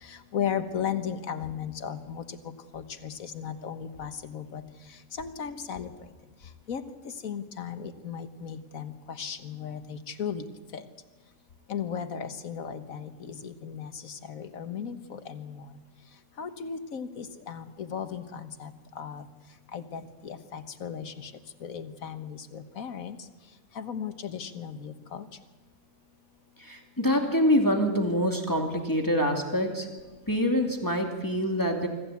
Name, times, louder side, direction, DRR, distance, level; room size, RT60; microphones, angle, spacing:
voice 1, 0.1-2.4 2.7-4.6 5.2-5.9 6.7-6.8 7.2-10.4 10.7-10.8 11.7-15.6 16.4-18.7 19.0-19.3 19.7-21.3 21.6-23.2 23.8-25.3, left 7 dB, 85° left, 9 dB, 1.7 m, -36 dB
voice 2, 26.6-29.9 30.3-31.9, equal, 15° left, 2 dB, 2.5 m, -25 dB
25.0 x 14.5 x 8.4 m, 1.3 s
omnidirectional pair, 1.4 m